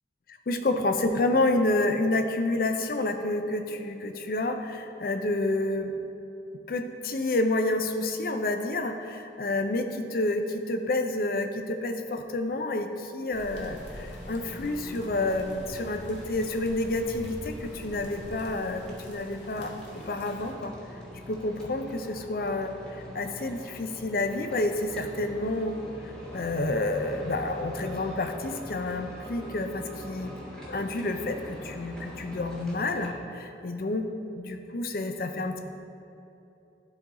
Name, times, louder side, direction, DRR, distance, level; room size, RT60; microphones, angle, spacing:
voice 1, 0.5-5.9 6.5-19.7 20.1-20.7 21.3-22.8 23.1-25.8 26.3-30.3 30.7-34.1 34.4-35.6, left 2 dB, 55° left, 6 dB, 0.5 m, -29 dB
sound 1, 13.3-20.5, equal, 85° left, 1.4 m, -46 dB
sound 2, 13.5-33.1, left 1 dB, 5° left, 1.0 m, -43 dB
11.5 x 3.8 x 4.0 m, 2.9 s
head